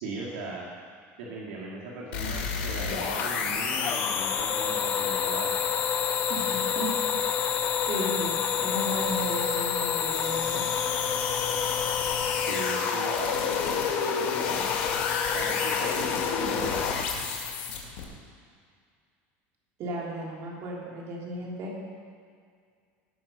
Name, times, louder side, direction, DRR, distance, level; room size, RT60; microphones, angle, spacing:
voice 1, 0.0-0.6 1.2-5.5 12.4-14.7 15.3-16.1 16.4-16.9, right 3 dB, 75° right, -4 dB, 2.0 m, -38 dB
sound 1, 2.1-18.0, left 6 dB, 85° left, 2.0 m, -30 dB
sound 2, 3.2-17.5, left 9 dB, 35° left, 0.5 m, -31 dB
voice 2, 6.3-6.9 7.8-10.6 19.8-21.7, right 1 dB, 50° right, -3 dB, 3.1 m, -35 dB
17.0 x 6.3 x 5.5 m, 2.1 s
supercardioid pair, 130°, 6 cm